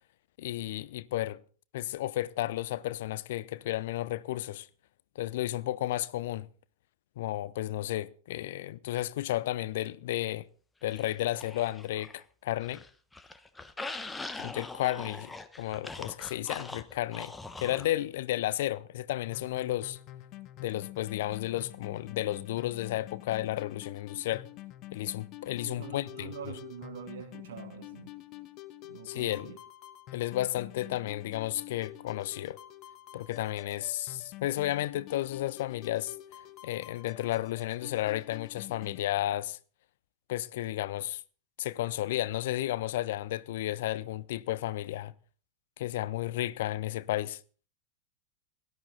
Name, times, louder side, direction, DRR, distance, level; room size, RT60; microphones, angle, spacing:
voice 1, 0.4-1.4 1.7-4.7 5.2-6.5 7.2-10.5 10.8-12.8 14.4-20.0 20.6-24.5 24.9-26.6 29.0-29.5 30.1-32.6 33.1-36.1 36.6-39.6 40.3-41.2 41.6-45.1 45.8-47.4, left 14 dB, 55° left, 0.6 m, -33 dB
sound 1, 10.9-12.2 12.5-17.9, left 2 dB, 10° left, 1.1 m, -42 dB
sound 2, 19.2-39.0, left 15 dB, 40° left, 1.0 m, -47 dB
voice 2, 25.6-28.1 28.8-29.6, right 9 dB, 60° right, 1.4 m, -45 dB
17.5 x 13.0 x 4.0 m
figure-of-eight pair, 90°, 0 cm